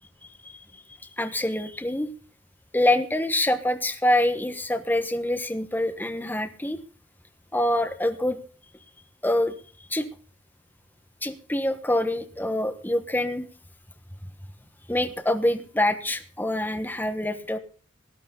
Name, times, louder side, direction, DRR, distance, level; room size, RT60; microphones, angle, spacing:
voice 1, 1.2-2.1 2.7-6.8 7.5-8.4 9.2-9.5 9.9-10.1 11.2-13.4 14.9-17.6, left 1 dB, 10° left, 7 dB, 1.3 m, -25 dB
18.0 x 11.0 x 4.0 m, 0.39 s
head